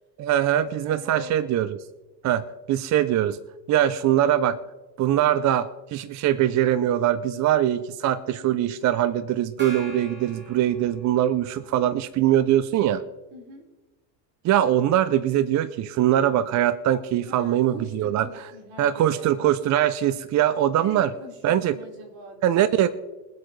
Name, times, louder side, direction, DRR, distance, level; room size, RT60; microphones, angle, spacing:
voice 1, 0.2-1.8 2.2-2.4 2.7-3.4 3.7-4.6 5.0-13.0 14.4-18.3 18.8-21.1 21.4-21.8 22.4-22.9, right 11 dB, 35° right, 13 dB, 0.5 m, -22 dB
voice 2, 0.8-1.3 13.3-13.7 17.1-19.3 20.7-22.4, equal, 70° right, -1 dB, 4.7 m, -42 dB
Gong, 9.6-11.6, right 2 dB, 20° right, 3.4 m, -41 dB
23.0 x 7.9 x 3.2 m, 1.1 s
supercardioid pair, 120°, 49 cm